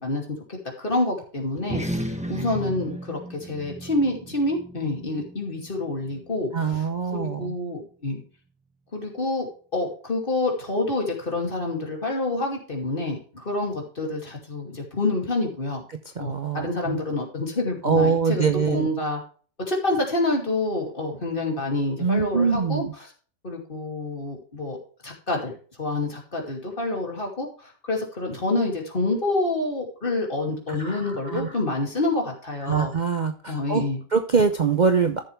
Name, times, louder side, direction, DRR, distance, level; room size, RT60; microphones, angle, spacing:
voice 1, 0.0-6.8 7.1-8.2 8.9-9.5 9.7-15.8 16.2-19.2 19.7-23.1 23.4-24.8 25.0-25.5 25.8-32.9 33.5-34.0, left 2 dB, 30° left, 0 dB, 2.7 m, -27 dB
sound 1, 1.6-6.4, right 1 dB, 5° right, 1.0 m, -35 dB
voice 2, 6.5-7.5 16.2-17.0 17.8-18.9 22.0-22.9 30.7-31.5 32.6-33.8 34.1-35.2, right 5 dB, 70° right, 7 dB, 0.4 m, -24 dB
13.5 x 7.0 x 3.4 m, 0.41 s
omnidirectional pair, 1.9 m